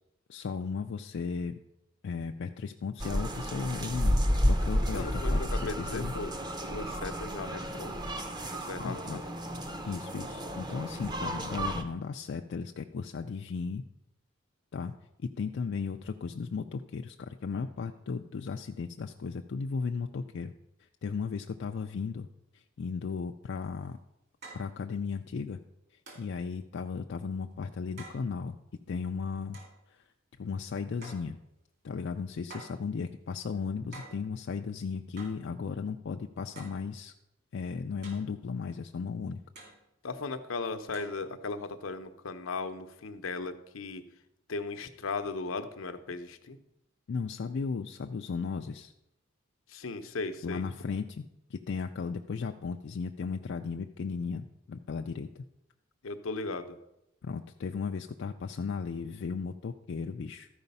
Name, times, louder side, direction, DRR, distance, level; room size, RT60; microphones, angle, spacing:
voice 1, 0.3-1.6 2.0-4.2 4.5-6.1 8.8-9.2 9.8-13.8 14.7-14.9 15.2-20.5 21.0-22.3 22.5-24.0 24.5-25.6 26.2-28.6 28.9-29.6 29.9-30.0 30.4-31.4 31.8-37.1 37.5-39.4 47.1-48.9 50.4-51.2 51.5-55.4 57.2-60.5, left 5 dB, 55° left, 4 dB, 0.4 m, -35 dB
sound 1, 3.0-11.8, equal, 20° right, 0.7 m, -31 dB
voice 2, 4.9-6.3 6.6-8.0 8.5-9.2 40.0-44.0 44.5-46.6 49.7-50.6 56.0-56.8, left 3 dB, 75° left, 8 dB, 0.7 m, -37 dB
sound 2, 23.6-23.7 24.4-24.7 26.1-26.4 28.0-28.3 29.5-29.8 31.0-31.3 32.5-32.8 33.9-34.2 35.2-35.4 36.6-36.8 38.0-38.3 39.6-39.8 40.9-41.2, right 3 dB, 55° right, 2.5 m, -48 dB
13.0 x 4.9 x 5.4 m, 0.86 s
head